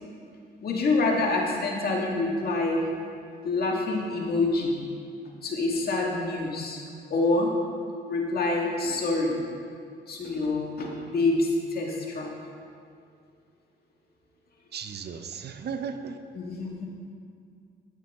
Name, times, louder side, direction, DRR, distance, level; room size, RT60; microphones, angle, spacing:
voice 1, 0.6-2.8 3.4-4.8 5.4-6.8 7.1-7.5 8.1-9.4 10.1-12.3 16.3-16.9, left 2 dB, 50° left, -1 dB, 2.0 m, -26 dB
voice 2, 14.7-16.2, right 6 dB, 55° right, 8 dB, 0.7 m, -35 dB
12.0 x 9.1 x 3.7 m, 2.3 s
cardioid pair, 90°, 20 cm